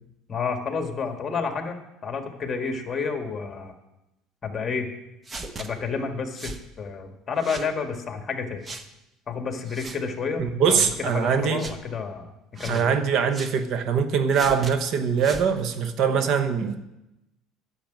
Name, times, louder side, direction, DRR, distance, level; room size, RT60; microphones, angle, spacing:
voice 1, 0.3-3.7 4.4-4.9 5.6-8.6 9.3-12.3 12.6-12.9, left 5 dB, 25° left, 5 dB, 1.8 m, -30 dB
sound 1, 5.2-5.7 6.4-6.6 7.4-7.7 8.6-8.9 9.7-10.0 10.8-11.0 11.6-11.8 12.5-12.9 13.3-13.6 14.3-14.7 15.2-15.5, right 2 dB, 25° right, 1.0 m, -37 dB
voice 2, 10.4-11.7 12.7-16.8, right 6 dB, 55° right, 9 dB, 1.0 m, -23 dB
10.5 x 7.0 x 9.2 m, 0.91 s
cardioid pair, 115°, 0 cm